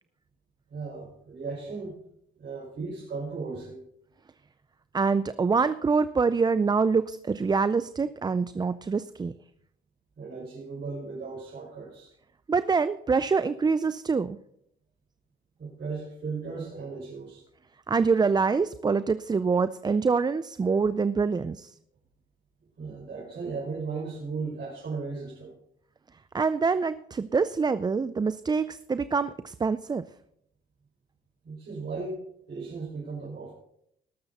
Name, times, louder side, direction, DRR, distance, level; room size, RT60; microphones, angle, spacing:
voice 1, 0.7-2.0 2.4-3.8 10.2-12.1 15.6-17.4 22.8-25.5 31.4-32.2 32.5-33.5, right 4 dB, 55° right, -6 dB, 5.5 m, -36 dB
voice 2, 4.9-9.3 12.5-14.4 17.9-21.7 26.3-30.0, right 5 dB, 20° right, 14 dB, 0.4 m, -25 dB
19.5 x 7.0 x 4.1 m, 0.74 s
cardioid pair, 90°, 20 cm